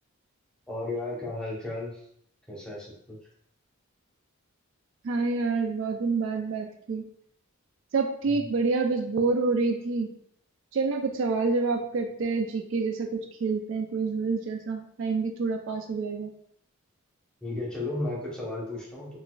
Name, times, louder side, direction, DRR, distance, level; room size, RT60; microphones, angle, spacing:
voice 1, 0.7-2.0 2.5-3.2 8.3-8.5 17.4-19.2, left 2 dB, 5° left, -5 dB, 0.8 m, -34 dB
voice 2, 5.0-7.0 7.9-10.1 10.7-16.3, right 4 dB, 60° right, 4 dB, 0.3 m, -27 dB
3.9 x 2.4 x 2.3 m, 0.67 s
head